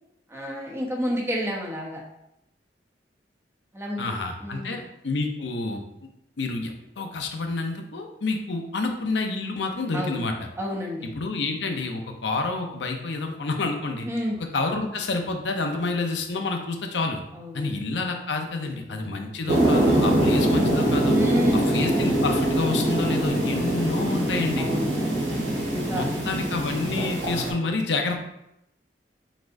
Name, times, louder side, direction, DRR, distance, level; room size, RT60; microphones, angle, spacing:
voice 1, 0.3-2.0 3.7-4.1 4.4-4.8 9.9-10.3 10.6-11.1 14.0-14.4 17.3-17.7 18.6-19.3 21.1-21.8 24.6-24.8 25.7-26.0, equal, 15° right, -2 dB, 0.8 m, -30 dB
voice 2, 4.0-5.8 6.4-10.3 11.0-14.1 14.5-17.2 17.5-21.2 21.7-24.7 25.9-28.3, left 3 dB, 80° left, 4 dB, 0.7 m, -28 dB
sound 1, 19.5-27.5, right 1 dB, 90° right, 1.5 m, -23 dB
4.6 x 4.1 x 2.6 m, 0.82 s
head